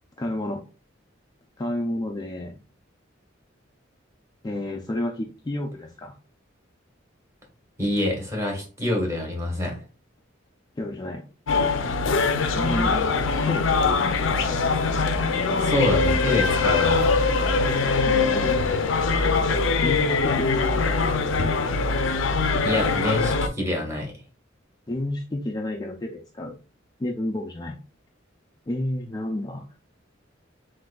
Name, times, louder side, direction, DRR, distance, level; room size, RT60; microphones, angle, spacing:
voice 1, 0.2-0.6 1.6-2.6 4.4-6.1 10.8-11.3 12.5-13.2 13.4-14.0 18.0-18.6 19.8-20.8 24.9-26.6 27.0-27.8 28.7-29.7, left 1 dB, 20° left, 2 dB, 0.4 m, -30 dB
voice 2, 7.8-9.7 15.6-17.4 22.6-24.1, left 1 dB, 15° right, 0 dB, 1.5 m, -26 dB
sound 1, 11.5-23.5, left 4 dB, 80° left, 0.5 m, -22 dB
7.5 x 2.6 x 2.3 m, 0.34 s
head